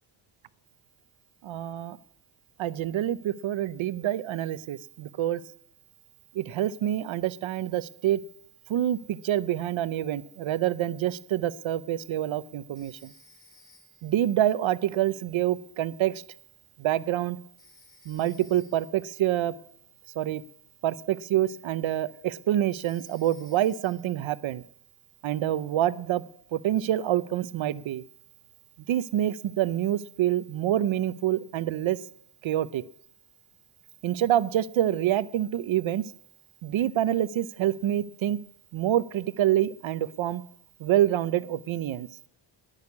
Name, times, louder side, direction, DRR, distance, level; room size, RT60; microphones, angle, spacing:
voice 1, 1.4-2.0 2.6-5.4 6.3-8.2 8.7-13.1 14.0-16.2 16.8-17.4 18.1-19.5 20.2-20.4 20.8-24.6 25.2-26.2 26.5-28.0 28.9-32.0 32.4-32.8 34.0-36.0 36.6-38.4 38.7-40.4 40.8-42.1, right 12 dB, 65° right, 16 dB, 0.8 m, -27 dB
Telephone, 12.7-14.2 17.6-19.0 22.7-24.1, left 5 dB, 60° left, 4.6 m, -59 dB
19.5 x 6.6 x 9.5 m, 0.72 s
cardioid pair, 115°, 50 cm